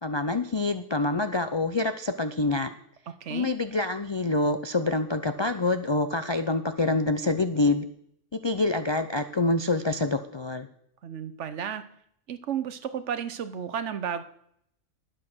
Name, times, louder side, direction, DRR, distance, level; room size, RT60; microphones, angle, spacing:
voice 1, 0.0-2.7 3.3-7.8 8.3-10.7, left 2 dB, 45° left, 9 dB, 0.3 m, -26 dB
voice 2, 3.2-3.5 11.0-11.8 12.3-14.2, right 8 dB, 65° right, 11 dB, 1.1 m, -32 dB
11.0 x 7.6 x 6.2 m, 0.70 s
omnidirectional pair, 1.3 m